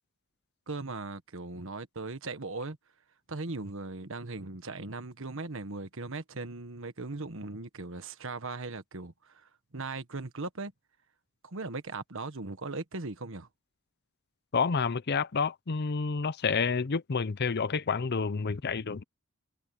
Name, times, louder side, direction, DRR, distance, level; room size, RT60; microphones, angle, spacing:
voice 1, 0.7-2.8 3.3-10.7 11.4-13.5, right 3 dB, 65° right, 1.5 m, -38 dB
voice 2, 14.5-19.0, left 5 dB, 50° left, 0.6 m, -29 dB
head